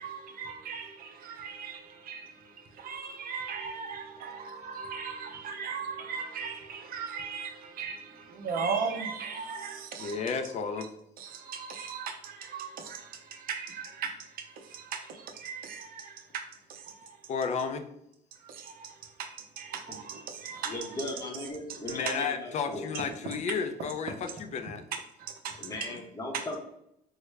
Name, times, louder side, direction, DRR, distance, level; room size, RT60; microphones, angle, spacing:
voice 1, 0.0-10.3 10.8-10.9 11.2-16.4 16.7-17.2 18.4-21.1 21.7-21.8 22.1-22.2 22.9-23.0 24.1-24.2 25.2-26.0 26.3-26.6, right 6 dB, 60° right, 0.6 m, -38 dB
voice 2, 10.0-10.9 17.3-17.9 21.8-24.8, left 5 dB, 45° left, 0.4 m, -32 dB
voice 3, 20.7-22.9 25.6-26.6, left 1 dB, 20° left, 0.8 m, -37 dB
3.6 x 2.1 x 3.2 m
cardioid pair, 110°, 17 cm